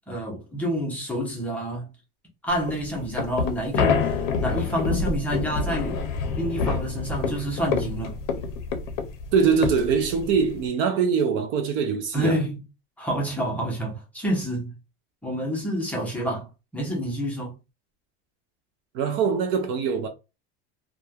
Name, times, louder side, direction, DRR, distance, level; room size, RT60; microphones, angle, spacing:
voice 1, 0.1-1.9 2.4-6.0 6.3-8.2 12.1-12.6 13.0-14.8 15.2-17.5, equal, 5° left, 0.6 m, -28 dB
sound 1, 2.5-10.7, left 5 dB, 60° left, 0.6 m, -27 dB
voice 2, 9.3-12.4 18.9-20.1, right 6 dB, 45° right, 0.4 m, -23 dB
3.0 x 2.2 x 2.3 m
cardioid pair, 165°, 29 cm